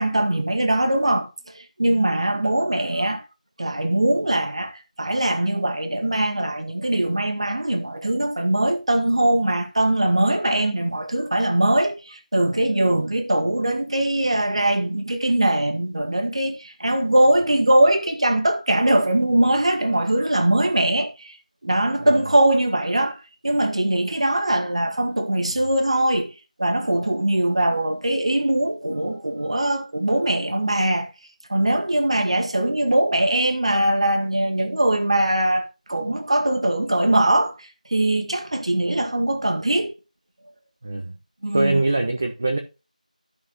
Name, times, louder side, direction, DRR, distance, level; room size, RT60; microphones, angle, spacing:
voice 1, 0.0-3.2 3.6-21.4 21.6-26.3 26.6-31.1 31.5-39.9 41.4-41.8, right 1 dB, 45° right, 1.4 m, -21 dB
voice 2, 40.8-41.2 41.5-42.6, right 2 dB, 15° right, 0.5 m, -23 dB
15.0 x 5.4 x 2.6 m
figure-of-eight pair, 175°, 4 cm